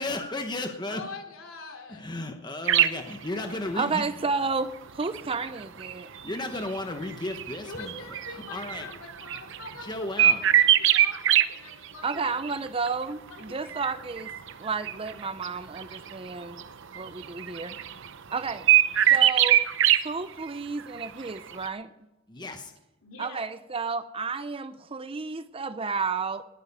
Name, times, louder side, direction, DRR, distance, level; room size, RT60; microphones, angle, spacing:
voice 1, 0.0-1.0 1.9-4.0 6.2-7.9 8.3-8.9 9.8-10.4 22.3-22.7, left 2 dB, 20° left, 5 dB, 1.1 m, -34 dB
voice 2, 0.9-2.1 3.3-3.8 7.6-12.4 13.3-13.7 23.0-23.4, left 3 dB, 70° left, 3 dB, 3.1 m, -43 dB
sound 1, 2.7-3.0 4.1-4.2 5.0-9.7 10.2-11.4 11.7-12.2 12.4-12.9 13.7-15.5 15.7-16.3 16.6-16.7 16.9-18.1 18.3-20.0 20.4-20.5 20.8-21.3 21.5-21.7, right 11 dB, 60° right, 0.7 m, -22 dB
voice 3, 3.8-6.3 12.0-14.3 14.6-16.6 16.9-17.8 18.3-18.7 19.1-19.6 20.0-21.9 23.2-26.4, right 4 dB, 25° right, 13 dB, 0.6 m, -31 dB
20.0 x 9.1 x 5.4 m, 0.98 s
head